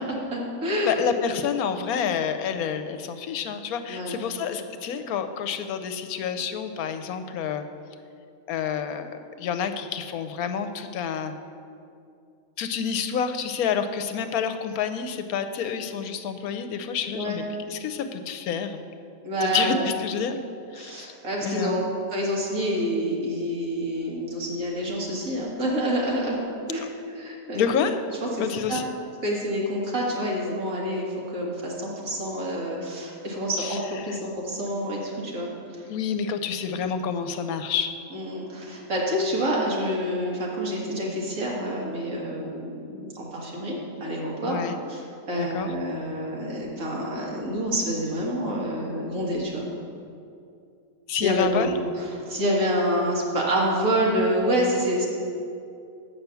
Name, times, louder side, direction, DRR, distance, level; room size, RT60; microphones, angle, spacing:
voice 1, 0.0-0.9 3.9-4.2 17.1-17.4 19.2-19.9 20.8-21.8 22.1-26.4 26.7-26.9 27.1-27.8 28.2-28.8 29.2-35.9 36.7-36.8 38.1-44.6 44.9-49.7 51.1-51.7 52.0-55.1, equal, 65° right, -3 dB, 2.1 m, -27 dB
voice 2, 0.9-7.7 8.5-11.3 12.6-18.8 19.4-20.4 20.7-21.1 21.4-21.8 27.5-28.0 28.4-28.8 33.6-33.8 34.1-34.2 35.9-37.9 44.4-44.8 45.4-45.7 51.1-51.8, left 7 dB, 85° left, 9 dB, 1.1 m, -28 dB
8.0 x 5.8 x 6.9 m, 2.5 s
omnidirectional pair, 1.5 m